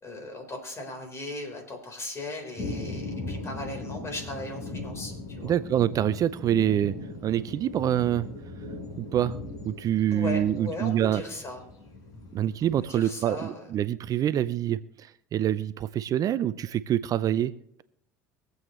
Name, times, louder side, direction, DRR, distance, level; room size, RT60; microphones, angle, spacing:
voice 1, 0.0-5.5 10.1-11.6 12.6-13.7, left 2 dB, 35° left, 3 dB, 4.4 m, -37 dB
sound 1, 2.6-12.8, left 2 dB, 50° left, 5.4 m, -39 dB
voice 2, 5.4-6.9 7.2-8.3 9.0-9.4 9.6-11.2 12.3-17.5, right 11 dB, 45° right, 15 dB, 0.5 m, -26 dB
23.5 x 8.0 x 3.2 m, 0.75 s
hypercardioid pair, 70°, 8 cm